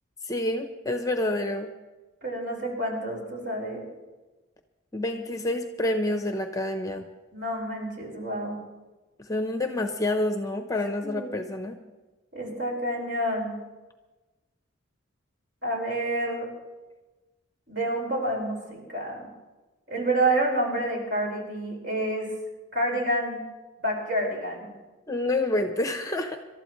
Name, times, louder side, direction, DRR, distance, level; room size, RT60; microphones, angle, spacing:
voice 1, 0.2-1.7 4.9-7.1 9.2-11.8 25.1-26.4, left 1 dB, 15° left, 6 dB, 0.7 m, -28 dB
voice 2, 2.2-3.9 7.3-8.6 11.0-11.4 12.3-13.6 15.6-16.5 17.7-19.3 19.9-22.3 22.7-23.4 23.8-24.7, right 1 dB, 55° right, -2 dB, 4.9 m, -28 dB
26.5 x 12.5 x 3.1 m, 1.2 s
head